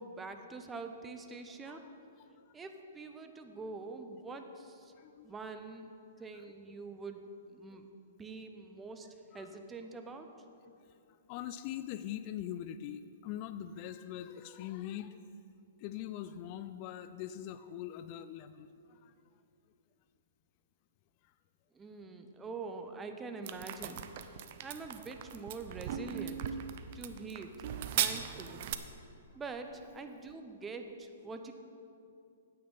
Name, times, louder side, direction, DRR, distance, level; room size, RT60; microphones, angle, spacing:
voice 1, 0.0-1.8 2.5-4.9 5.2-5.9 6.2-7.8 8.2-9.1 9.3-10.3 21.7-24.1 24.6-26.5 26.9-27.6 27.9-28.7 29.3-31.5, right 3 dB, 15° right, 6 dB, 0.8 m, -45 dB
voice 2, 5.0-5.3 9.3-9.5 11.3-15.2 15.8-19.1, left 11 dB, 40° left, 12 dB, 0.3 m, -42 dB
sound 1, 23.5-28.8, right 10 dB, 50° right, 0.6 m, -38 dB
9.5 x 8.6 x 5.4 m, 2.6 s
figure-of-eight pair, 115°, 0 cm